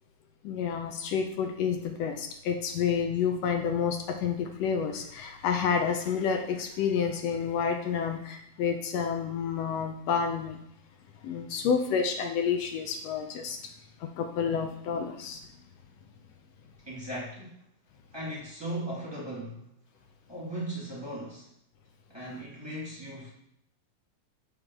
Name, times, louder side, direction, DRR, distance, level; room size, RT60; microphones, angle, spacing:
voice 1, 0.4-10.6 11.2-13.6 14.0-15.4, left 6 dB, 80° left, 5 dB, 1.5 m, -29 dB
voice 2, 16.8-17.6 18.1-19.6 20.3-21.5 22.1-23.3, right 1 dB, 15° right, -6 dB, 1.0 m, -37 dB
8.0 x 3.4 x 6.0 m, 0.75 s
omnidirectional pair, 3.7 m